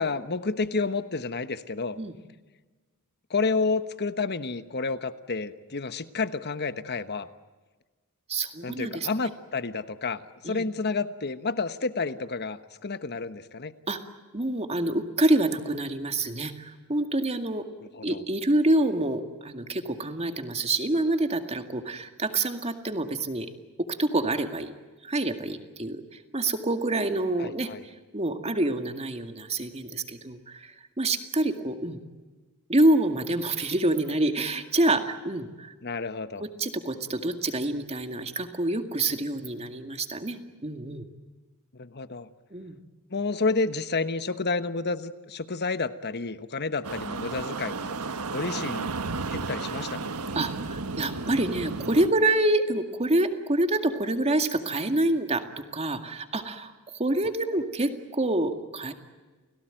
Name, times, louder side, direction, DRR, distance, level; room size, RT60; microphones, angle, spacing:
voice 1, 0.0-2.0 3.3-7.3 8.6-13.7 17.8-18.2 27.4-27.8 35.8-36.4 41.7-42.3 43.1-48.0 48.3-48.9 49.3-50.1, left 4 dB, 50° left, 12 dB, 1.2 m, -30 dB
voice 2, 8.3-9.1 10.4-10.7 13.9-14.0 14.3-17.6 18.0-23.5 23.8-24.7 25.0-27.7 28.1-32.0 32.7-35.7 36.6-40.4 40.6-41.1 42.5-42.8 50.3-58.9, right 2 dB, 30° right, 7 dB, 2.1 m, -27 dB
sound 1, 46.8-52.1, right 3 dB, 90° right, 1.3 m, -33 dB
30.0 x 18.0 x 9.1 m, 1.3 s
head